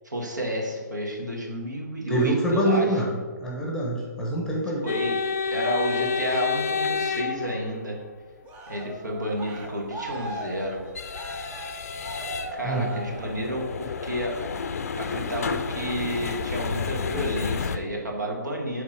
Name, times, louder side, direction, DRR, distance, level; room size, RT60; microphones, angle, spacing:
voice 1, 0.0-2.9 4.8-5.1 5.5-8.0 8.7-10.8 12.5-14.7 15.0-18.8, equal, 75° right, 0 dB, 1.5 m, -30 dB
voice 2, 2.1-3.1 3.4-4.8 12.6-12.9, right 1 dB, 5° left, -2 dB, 1.1 m, -25 dB
sound 1, 4.9-8.1 10.1-17.8, left 5 dB, 55° left, 0.4 m, -30 dB
Cheering, 8.4-13.7 14.1-14.5, right 2 dB, 15° right, 0.5 m, -40 dB
7.0 x 3.6 x 4.9 m, 1.5 s
figure-of-eight pair, 130°, 10 cm